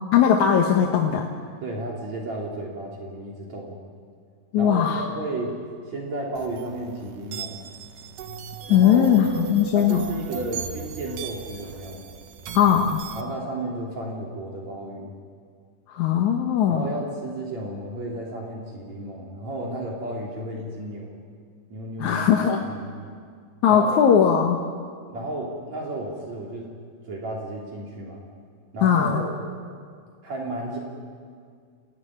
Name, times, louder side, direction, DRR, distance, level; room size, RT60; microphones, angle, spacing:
voice 1, 0.1-1.3 4.5-5.0 8.7-10.1 12.5-13.0 15.9-16.9 22.0-22.6 23.6-24.6 28.8-29.2, left 8 dB, 70° left, 1 dB, 2.6 m, -19 dB
voice 2, 1.6-3.8 4.6-5.6 5.9-7.6 8.7-9.2 9.7-12.0 13.1-15.1 16.7-21.1 21.7-23.1 23.7-24.0 25.1-26.7 27.1-28.2 28.7-29.4 30.2-30.8, right 1 dB, 55° right, -2 dB, 4.5 m, -33 dB
sound 1, 6.4-13.2, right 7 dB, 80° right, 2.8 m, -38 dB
28.5 x 17.0 x 10.0 m, 2.1 s
omnidirectional pair, 3.7 m